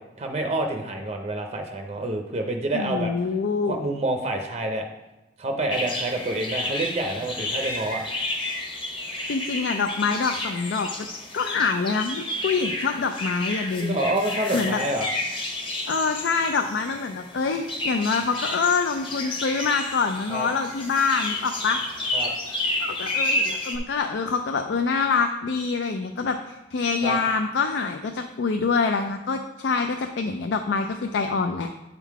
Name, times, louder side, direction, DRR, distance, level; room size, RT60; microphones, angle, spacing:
voice 1, 0.0-3.1 3.7-4.8 5.4-8.0 13.8-15.1 20.3-20.5 22.1-22.3 27.0-27.2, right 1 dB, 35° right, 4 dB, 0.5 m, -28 dB
voice 2, 2.7-3.8 9.3-10.9 11.3-14.0 14.5-14.8 15.9-21.8 22.8-31.7, left 4 dB, 80° left, 6 dB, 0.4 m, -25 dB
sound 1, 5.7-23.8, left 1 dB, 30° left, 0.9 m, -31 dB
8.1 x 3.7 x 4.6 m, 1.0 s
head